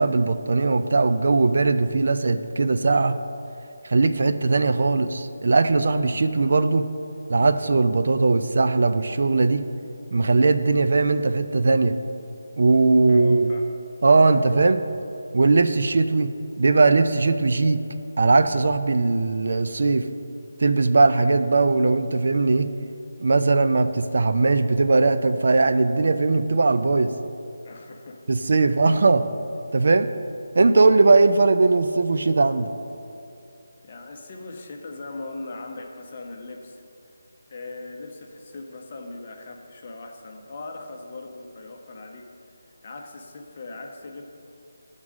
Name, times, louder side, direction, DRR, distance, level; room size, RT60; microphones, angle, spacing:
voice 1, 0.0-3.2 3.8-6.9 7.3-9.6 10.1-12.0 12.6-13.5 14.0-14.8 15.3-16.3 16.6-17.8 18.2-20.1 20.6-22.7 23.2-27.1 28.3-29.3 29.7-30.1 30.6-32.7, right 3 dB, 55° right, 10 dB, 0.3 m, -19 dB
voice 2, 13.1-13.7 27.6-28.2 33.8-36.8 37.5-42.3 42.8-44.2, left 2 dB, 30° left, 2 dB, 0.7 m, -39 dB
9.3 x 3.7 x 6.1 m, 2.6 s
figure-of-eight pair, 175°, 0 cm